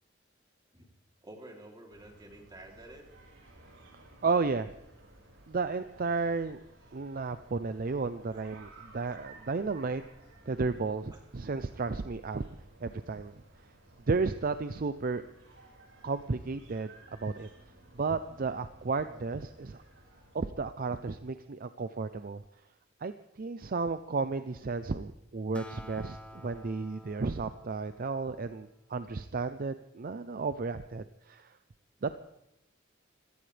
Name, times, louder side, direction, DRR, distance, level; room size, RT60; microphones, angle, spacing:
voice 1, 1.2-3.1 8.3-8.4 9.4-9.6, right 1 dB, 25° right, 0 dB, 3.1 m, -50 dB
sound 1, 1.9-20.4, right 2 dB, 90° right, 5.4 m, -57 dB
voice 2, 4.2-4.7 5.5-6.6 6.9-10.0 10.5-12.4 12.8-13.3 14.1-15.2 16.0-17.5 17.9-19.8 20.3-22.4 23.0-31.6 32.0-32.2, right 4 dB, 50° right, 11 dB, 0.5 m, -33 dB
Acoustic guitar, 25.5-29.3, equal, 5° left, 1.0 m, -50 dB
25.5 x 16.5 x 3.4 m, 0.82 s
head